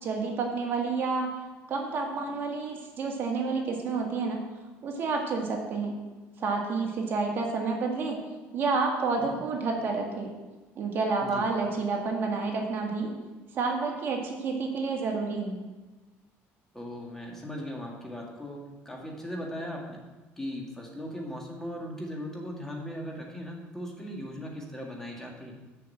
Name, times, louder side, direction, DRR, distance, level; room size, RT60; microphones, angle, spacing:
voice 1, 0.0-1.3 1.7-4.4 4.8-5.9 6.4-8.2 8.5-10.3 10.8-13.1 13.5-15.6, right 4 dB, 45° right, 0 dB, 1.8 m, -29 dB
voice 2, 16.7-18.6 18.9-20.0 20.4-25.5, equal, 10° left, -1 dB, 1.8 m, -38 dB
6.8 x 6.4 x 7.5 m, 1.2 s
cardioid pair, 140°, 5 cm